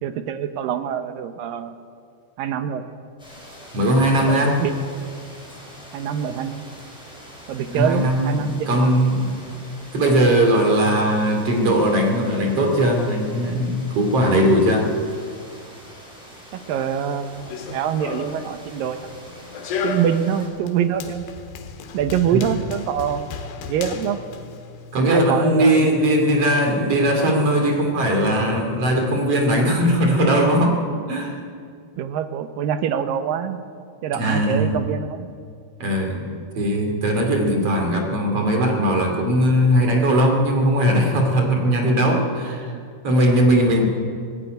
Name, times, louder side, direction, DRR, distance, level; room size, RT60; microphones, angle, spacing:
voice 1, 0.0-1.7 2.4-2.8 4.2-4.8 5.9-6.6 7.5-8.9 16.5-19.0 19.8-21.3 21.9-23.3 23.7-24.2 25.0-26.2 32.0-33.6 34.0-35.3 42.7-42.9, right 8 dB, 70° right, 9 dB, 2.3 m, -25 dB
sound 1, 3.2-20.5, equal, ahead, 6.4 m, -43 dB
voice 2, 3.7-4.6 7.7-9.4 9.9-14.9 22.3-22.4 24.9-30.8 31.1-31.4 34.1-34.8 35.8-42.7 43.0-43.8, equal, 40° right, 2 dB, 3.1 m, -19 dB
Run, 17.3-25.0, left 5 dB, 80° left, 3.5 m, -34 dB
19.0 x 15.0 x 9.2 m, 2.2 s
omnidirectional pair, 4.7 m